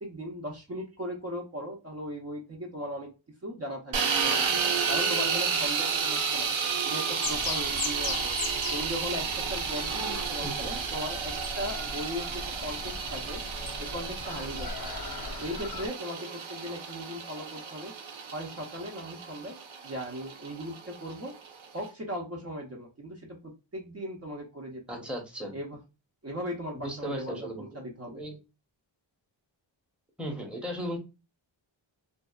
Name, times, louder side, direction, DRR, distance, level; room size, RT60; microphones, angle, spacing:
voice 1, 0.0-3.1 3.4-4.5 4.9-6.5 6.8-8.3 8.7-13.4 13.8-14.7 15.4-17.9 18.3-19.5 19.8-21.3 21.7-25.1 25.5-25.8 26.2-28.2, equal, 30° right, -1 dB, 0.7 m, -38 dB
sound 1, 3.9-21.9, right 6 dB, 75° right, 0.7 m, -32 dB
sound 2, 7.2-15.9, left 3 dB, 50° left, 0.6 m, -39 dB
voice 2, 10.4-10.8 24.9-25.5 26.7-27.7 28.1-28.3 30.2-31.0, equal, ahead, 0 dB, 0.8 m, -36 dB
2.6 x 2.3 x 2.2 m, 0.28 s
cardioid pair, 60°, 48 cm